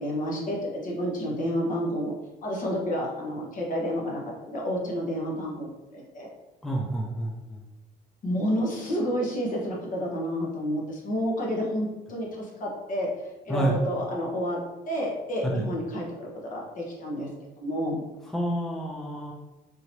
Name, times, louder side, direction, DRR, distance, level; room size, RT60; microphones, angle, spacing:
voice 1, 0.0-2.1 2.4-6.3 8.2-13.1 13.4-14.6 14.9-17.3 17.6-18.0, equal, 50° left, -2 dB, 1.2 m, -30 dB
voice 2, 6.6-7.6 13.5-13.8 15.5-15.6 18.3-19.3, right 1 dB, ahead, -2 dB, 0.5 m, -29 dB
3.7 x 2.8 x 2.9 m, 1.0 s
cardioid pair, 110°, 17 cm